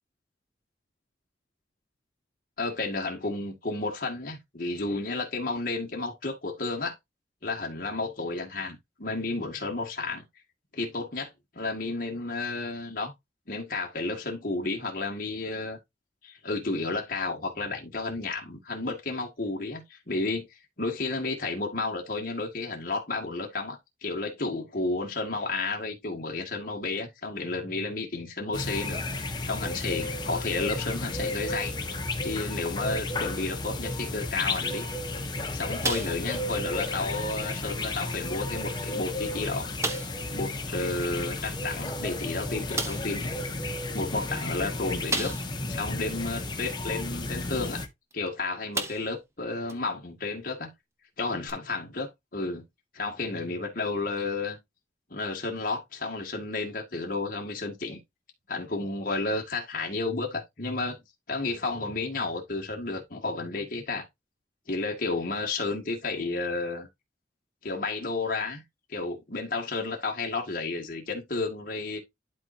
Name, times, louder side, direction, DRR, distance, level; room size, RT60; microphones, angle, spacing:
voice 1, 2.6-7.0 7.4-10.2 10.7-13.1 13.5-15.8 16.2-20.5 20.8-29.0 29.5-31.7 32.2-34.9 35.5-39.7 40.3-43.3 43.9-45.3 45.7-47.8 48.1-50.7 51.2-52.6 52.9-54.6 55.1-58.0 58.5-61.0 61.3-64.1 64.7-66.9 67.6-68.6 68.9-72.0, left 3 dB, 50° left, 1.9 m, -32 dB
sound 1, 28.5-47.9, left 2 dB, 25° left, 1.2 m, -33 dB
sound 2, 35.8-36.5 36.8-37.0 37.6-37.7 38.5-38.6 39.0-39.1 39.8-40.2 41.9-42.0 42.8-43.2 45.1-45.7 46.2-46.3 48.1-48.3 48.7-49.2 49.7-49.8 51.5-51.6, right 3 dB, 15° right, 1.1 m, -32 dB
11.5 x 4.4 x 2.7 m
head